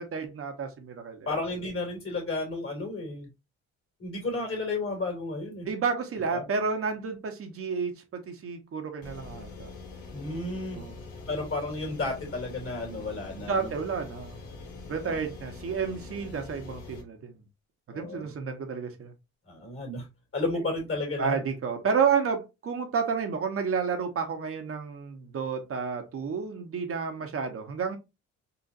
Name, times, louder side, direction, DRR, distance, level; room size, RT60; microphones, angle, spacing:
voice 1, 0.0-1.3 5.7-9.7 10.8-10.9 13.4-14.4 14.9-17.3 17.9-19.1 21.2-28.0, right 5 dB, 50° right, 0.8 m, -31 dB
voice 2, 1.3-3.3 4.0-5.7 6.3-6.4 10.1-10.8 11.3-13.7 14.9-15.2 17.9-18.3 19.5-20.0 20.3-21.4, left 2 dB, 45° left, 2.2 m, -32 dB
sound 1, 9.0-17.0, left 4 dB, 90° left, 1.2 m, -44 dB
3.9 x 2.4 x 2.4 m
cardioid pair, 90°, 30 cm